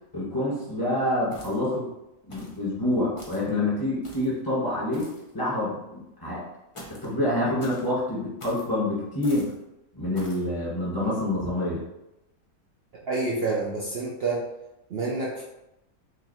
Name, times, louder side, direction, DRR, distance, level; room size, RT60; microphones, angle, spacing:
voice 1, 0.1-1.9 2.2-5.1 5.3-6.4 6.9-9.5 9.9-11.8, left 1 dB, 15° left, -8 dB, 1.3 m, -27 dB
sound 1, 1.3-1.8 2.3-2.6 3.2-3.5 4.0-4.4 4.9-5.3 6.7-7.1 7.6-7.9 8.4-8.7 9.2-9.6 10.1-10.4, equal, 35° left, 0.5 m, -45 dB
voice 2, 13.1-14.4 14.9-15.4, right 3 dB, 65° right, -4 dB, 0.6 m, -28 dB
2.9 x 2.8 x 4.1 m, 0.90 s
omnidirectional pair, 1.6 m